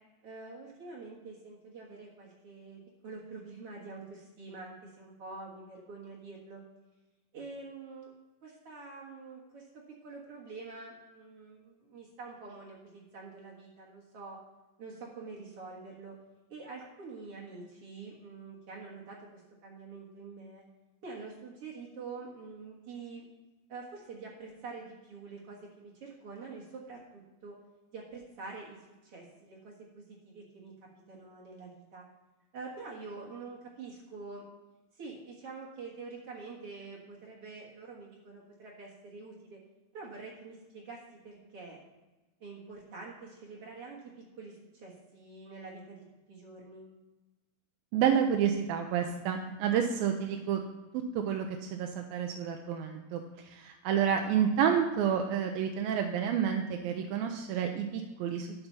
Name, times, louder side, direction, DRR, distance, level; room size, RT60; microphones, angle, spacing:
voice 1, 0.2-6.6 7.3-8.1 8.4-14.4 14.8-16.2 16.5-20.6 21.0-23.3 23.7-27.6 27.9-28.8 29.0-30.7 31.1-32.0 32.5-34.5 35.0-39.6 39.9-41.8 42.4-46.9, right 4 dB, 50° right, -3 dB, 2.0 m, -46 dB
voice 2, 47.9-50.6 50.9-58.5, right 8 dB, 80° right, 3 dB, 2.4 m, -29 dB
12.0 x 5.9 x 5.6 m, 1.1 s
omnidirectional pair, 4.3 m